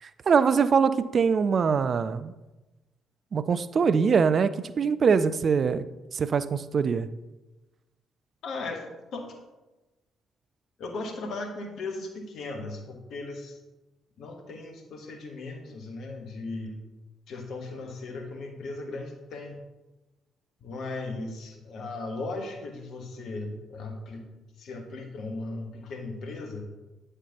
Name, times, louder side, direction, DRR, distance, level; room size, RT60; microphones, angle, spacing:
voice 1, 0.0-2.3 3.3-5.9 6.1-7.1, right 6 dB, 45° right, 14 dB, 0.3 m, -23 dB
voice 2, 8.4-8.9 9.1-9.4 10.8-13.6 14.2-16.7 17.3-19.6 20.6-24.3 24.6-26.6, left 3 dB, 55° left, 3 dB, 1.1 m, -37 dB
9.0 x 6.6 x 2.9 m, 1.1 s
figure-of-eight pair, 40°, 0 cm